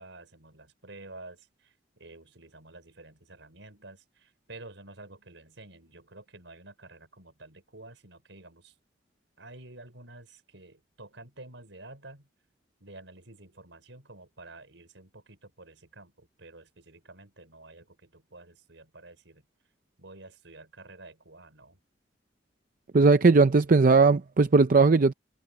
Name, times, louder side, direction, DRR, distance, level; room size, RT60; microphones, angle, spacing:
voice 1, 0.0-8.7 9.4-12.3 12.8-19.4 20.0-21.8, right 2 dB, 85° right, 4.9 m, -50 dB
voice 2, 22.9-25.1, right 4 dB, 50° right, 0.5 m, -19 dB
head